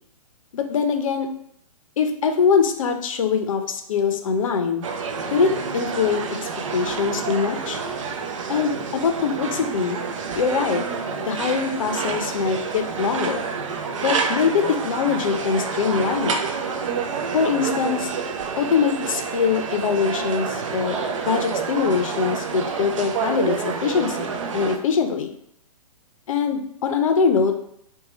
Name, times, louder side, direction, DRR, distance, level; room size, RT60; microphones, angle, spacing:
voice 1, 0.5-1.3 2.0-4.8 5.3-6.2 6.7-7.8 8.5-10.0 10.3-10.8 11.2-13.4 14.0-16.4 17.3-18.1 18.6-21.0 21.3-25.3 26.3-27.5, left 6 dB, 60° left, 6 dB, 0.5 m, -23 dB
sound 1, 4.8-24.8, right 5 dB, 60° right, 0.5 m, -28 dB
2.7 x 2.2 x 4.1 m, 0.73 s
figure-of-eight pair, 120°, 19 cm